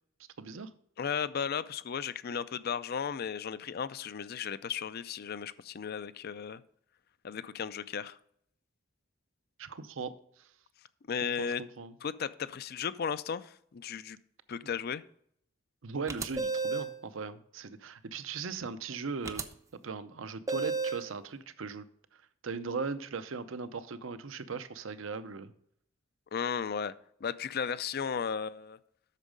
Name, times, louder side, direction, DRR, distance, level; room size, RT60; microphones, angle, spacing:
voice 1, 0.4-0.7 9.6-10.5 11.2-11.9 14.6-14.7 15.8-19.5 19.8-21.9 22.4-25.5, right 4 dB, 70° right, 12 dB, 0.6 m, -39 dB
voice 2, 1.0-6.6 7.2-8.2 11.1-11.6 12.0-14.2 14.5-15.0 26.3-26.9 27.2-28.8, left 7 dB, 50° left, 16 dB, 0.4 m, -35 dB
sound 1, 16.1-17.0 19.2-19.4 20.5-21.1, right 4 dB, 15° right, 0.5 m, -32 dB
8.3 x 6.3 x 5.1 m, 0.68 s
head